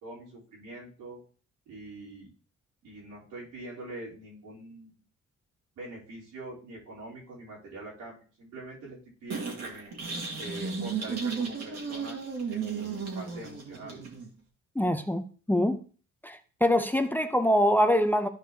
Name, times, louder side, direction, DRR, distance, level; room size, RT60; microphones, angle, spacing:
voice 1, 0.0-1.2 1.7-2.3 2.8-5.0 5.8-12.2 12.5-14.0, right 2 dB, 90° right, 3.9 m, -44 dB
sound 1, 9.3-14.3, right 5 dB, 55° right, 2.4 m, -34 dB
voice 2, 14.8-15.8 16.2-18.3, equal, 5° left, 0.7 m, -24 dB
13.5 x 4.9 x 2.9 m
cardioid pair, 90°, 30 cm